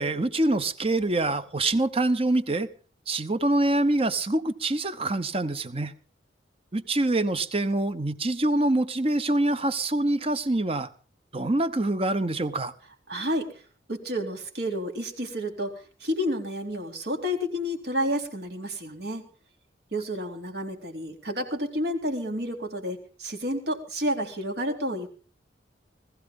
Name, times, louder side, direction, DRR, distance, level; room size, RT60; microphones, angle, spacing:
voice 1, 0.0-2.7 3.1-5.9 6.7-10.9 11.3-12.7, right 2 dB, 30° right, 1.1 m, -25 dB
voice 2, 13.1-13.5 13.9-19.2 19.9-25.1, equal, 60° right, 3.7 m, -30 dB
20.0 x 15.0 x 3.8 m
head